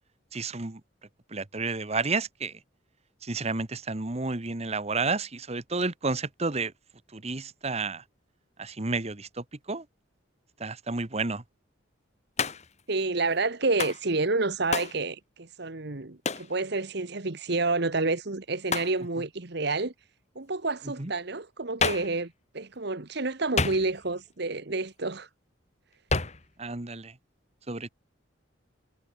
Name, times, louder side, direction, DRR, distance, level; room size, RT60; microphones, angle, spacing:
voice 1, 0.3-0.8 1.3-2.6 3.2-6.7 7.1-8.0 8.6-9.8 10.6-11.4 21.0-21.1 26.6-27.1 27.7-27.9, right 3 dB, 35° right, 1.3 m, -31 dB
Hands, 12.4-12.8 13.8-14.0 14.7-15.0 16.2-16.5 18.7-19.0 21.8-22.2 23.6-24.1 26.1-26.5, left 4 dB, 35° left, 2.3 m, -29 dB
voice 2, 12.9-19.9 20.3-25.3, right 3 dB, 60° right, 1.4 m, -29 dB
head